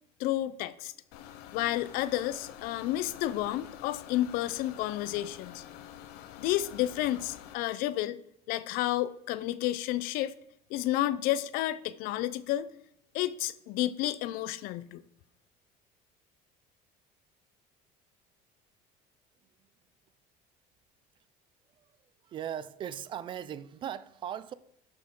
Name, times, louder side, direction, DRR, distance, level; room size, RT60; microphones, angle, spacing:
voice 1, 0.2-0.9 1.5-5.6 6.4-8.2 8.5-10.4 10.7-12.7 13.1-15.0, left 14 dB, 65° left, 0.6 m, -31 dB
sound 1, 1.1-7.5, left 10 dB, 90° left, 0.9 m, -47 dB
voice 2, 22.2-24.5, right 9 dB, 30° right, 0.4 m, -38 dB
12.0 x 6.2 x 3.7 m
cardioid pair, 180°, 16 cm